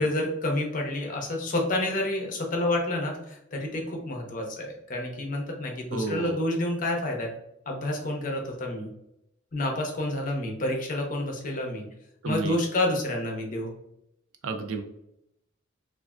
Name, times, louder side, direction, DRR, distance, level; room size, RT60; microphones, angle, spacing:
voice 1, 0.0-7.3 7.7-8.9 9.5-11.9 12.2-13.7, left 1 dB, 40° left, 1 dB, 0.6 m, -29 dB
voice 2, 5.9-6.4 12.2-12.6 14.4-14.8, right 4 dB, 85° right, 6 dB, 0.4 m, -31 dB
3.2 x 2.4 x 2.4 m, 0.80 s
head